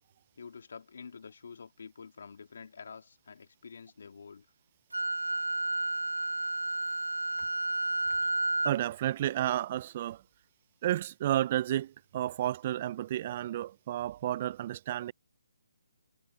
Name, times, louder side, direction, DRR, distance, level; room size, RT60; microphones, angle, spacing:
voice 1, 0.4-4.5, left 5 dB, 60° left, 3.2 m, -48 dB
Wind instrument woodwind instrument, 4.9-8.8, right 3 dB, 85° right, 1.9 m, -31 dB
voice 2, 8.6-10.2 10.8-15.1, right 12 dB, 35° right, 0.4 m, -31 dB
figure-of-eight pair, 145°, 0 cm